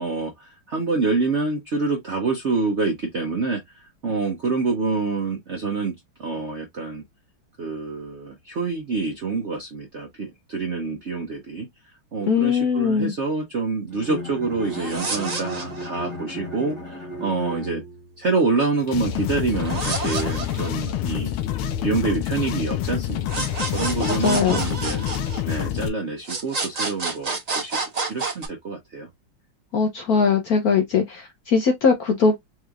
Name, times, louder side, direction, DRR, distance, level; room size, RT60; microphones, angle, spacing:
voice 1, 0.0-7.0 7.6-11.7 12.1-17.8 18.2-21.3 21.8-25.0 25.5-27.8 28.1-29.1, right 3 dB, 60° right, 0.7 m, -27 dB
voice 2, 12.3-13.1 24.0-24.6 29.7-32.4, left 5 dB, 65° left, 0.9 m, -20 dB
Bowed string instrument, 13.9-18.2, equal, 20° left, 1.1 m, -35 dB
sound 1, 14.6-16.1 19.5-21.1 23.3-25.8 26.2-28.5, right 3 dB, 90° right, 0.3 m, -29 dB
sound 2, 18.8-25.9, left 10 dB, 85° left, 1.6 m, -27 dB
4.6 x 3.1 x 2.4 m
omnidirectional pair, 2.3 m